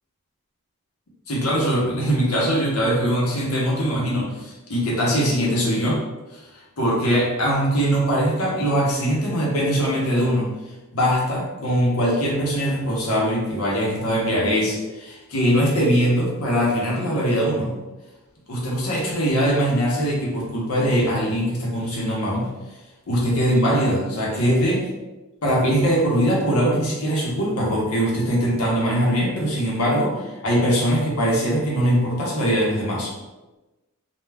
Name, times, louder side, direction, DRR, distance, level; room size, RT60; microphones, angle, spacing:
voice 1, 1.3-6.0 6.5-10.5 10.9-17.8 18.5-22.5 23.1-24.8 25.4-33.1, equal, 80° left, -3 dB, 0.8 m, -21 dB
2.3 x 2.2 x 3.2 m, 1.1 s
head